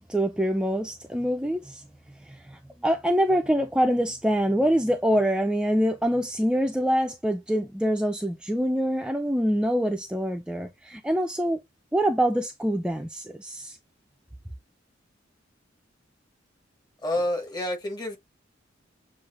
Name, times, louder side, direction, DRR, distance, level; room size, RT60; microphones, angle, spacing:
voice 1, 0.1-1.8 2.2-11.6 11.9-13.8, equal, 5° right, 0.4 m, -25 dB
voice 2, 17.0-18.2, left 1 dB, 20° left, 1.2 m, -28 dB
7.1 x 2.5 x 2.4 m
head